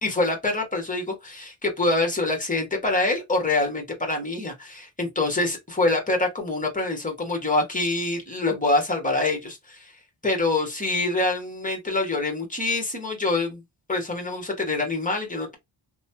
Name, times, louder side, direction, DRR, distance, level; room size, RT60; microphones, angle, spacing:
voice 1, 0.0-9.9 10.2-13.6 13.9-15.6, left 2 dB, 15° left, 1.2 m, -25 dB
3.1 x 2.2 x 2.7 m
wide cardioid pair, 110°, 46 cm